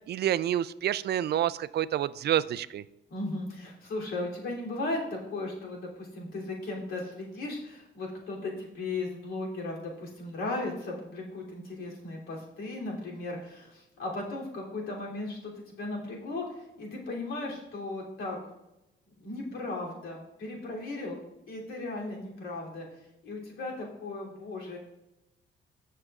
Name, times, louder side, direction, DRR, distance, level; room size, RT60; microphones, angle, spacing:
voice 1, 0.1-2.8, right 11 dB, 55° right, 15 dB, 0.4 m, -28 dB
voice 2, 3.1-15.5 15.8-18.4 19.2-21.2 21.5-22.9 23.2-24.8, left 2 dB, 75° left, -3 dB, 3.1 m, -36 dB
15.0 x 6.6 x 2.5 m, 0.91 s
cardioid pair, 90°, 20 cm